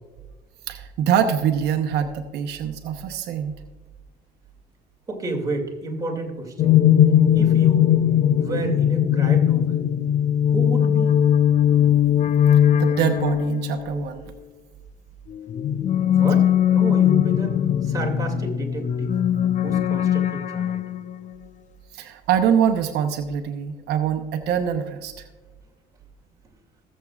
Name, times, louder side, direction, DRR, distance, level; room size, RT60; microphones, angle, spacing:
voice 1, 0.7-3.5 12.7-14.2 21.9-25.1, right 8 dB, 80° right, 6 dB, 0.9 m, -24 dB
voice 2, 5.1-6.8 7.3-7.9 8.4-9.9 10.5-11.2 16.1-17.6 17.8-19.1 19.6-20.8, right 2 dB, 20° right, 0 dB, 2.5 m, -30 dB
sound 1, 6.6-14.0 15.3-21.3, left 10 dB, 45° left, 0.5 m, -19 dB
19.0 x 7.5 x 2.4 m, 1.4 s
cardioid pair, 110°, 17 cm